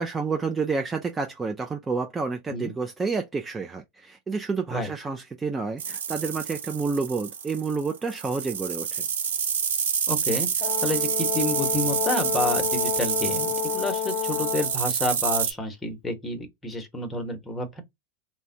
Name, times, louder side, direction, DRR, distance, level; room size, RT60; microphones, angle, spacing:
voice 1, 0.0-9.0, right 4 dB, 15° right, 0.3 m, -29 dB
sound 1, 5.8-15.5, right 7 dB, 90° right, 0.5 m, -28 dB
voice 2, 10.1-10.5 10.8-17.8, left 1 dB, 15° left, 0.9 m, -29 dB
Brass instrument, 10.6-14.8, left 14 dB, 40° left, 0.7 m, -30 dB
3.1 x 2.1 x 2.6 m
hypercardioid pair, 115°, 0 cm